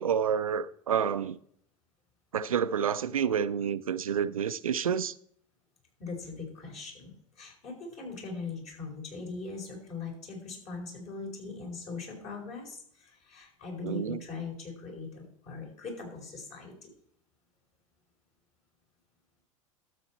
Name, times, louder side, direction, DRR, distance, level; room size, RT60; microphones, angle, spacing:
voice 1, 0.0-1.4 2.3-5.1 13.8-14.2, right 8 dB, 80° right, 0.5 m, -29 dB
voice 2, 6.0-16.9, left 4 dB, 40° left, 4.9 m, -41 dB
12.5 x 7.7 x 4.2 m
figure-of-eight pair, 85°, 18 cm